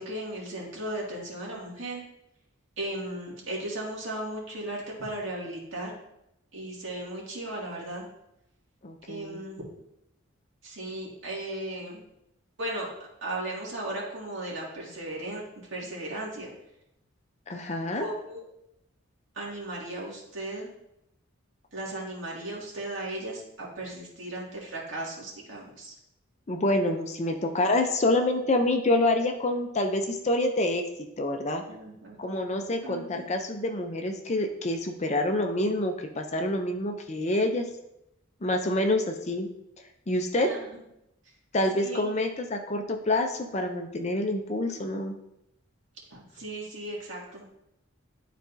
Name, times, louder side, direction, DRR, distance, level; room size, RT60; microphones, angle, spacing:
voice 1, 0.0-2.0 2.8-5.9 6.5-8.0 9.1-9.6 10.6-12.0 12.6-12.9 13.2-15.4 15.7-16.5 18.0-18.4 19.4-20.7 21.7-25.9 31.7-32.2 32.8-33.2 40.4-40.6 41.8-42.1 46.1-47.5, right 1 dB, 65° right, -4 dB, 2.3 m, -36 dB
voice 2, 8.8-9.4 17.5-18.1 26.5-30.8 31.2-31.6 32.2-37.7 38.4-39.5 40.1-40.5 41.5-45.1, left 1 dB, 35° left, 5 dB, 0.6 m, -27 dB
11.5 x 4.1 x 2.7 m, 0.83 s
head